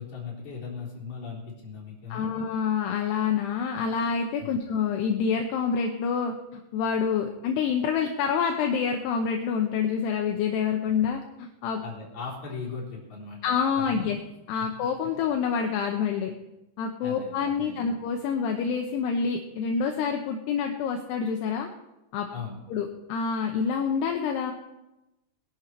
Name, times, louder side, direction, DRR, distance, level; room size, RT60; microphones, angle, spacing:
voice 1, 0.0-2.3 4.4-4.6 11.8-14.1 17.0-17.9 22.3-22.6, left 5 dB, 40° left, -3 dB, 4.7 m, -38 dB
voice 2, 2.1-11.8 13.4-14.2 14.5-16.3 16.8-21.7 22.1-22.3 22.7-24.5, left 6 dB, 75° left, 3 dB, 2.9 m, -27 dB
21.0 x 11.0 x 4.6 m, 0.96 s
omnidirectional pair, 5.3 m